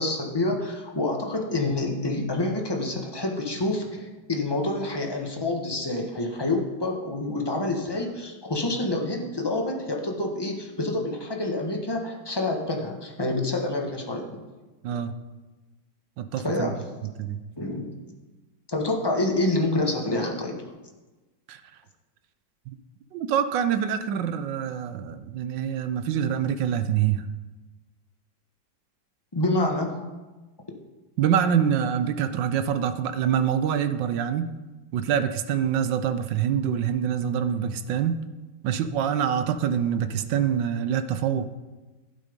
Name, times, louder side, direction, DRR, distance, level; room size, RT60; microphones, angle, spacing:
voice 1, 0.0-14.4 16.4-16.8 17.6-17.9 18.7-20.6 29.3-30.1, left 2 dB, 15° left, 0 dB, 1.2 m, -27 dB
voice 2, 16.2-16.7 17.2-17.4 21.5-21.6 22.7-22.8 23.1-27.2 31.2-34.5 34.9-38.2 38.6-41.5, right 8 dB, 70° right, 11 dB, 1.3 m, -25 dB
12.0 x 9.2 x 5.2 m, 1.2 s
omnidirectional pair, 2.1 m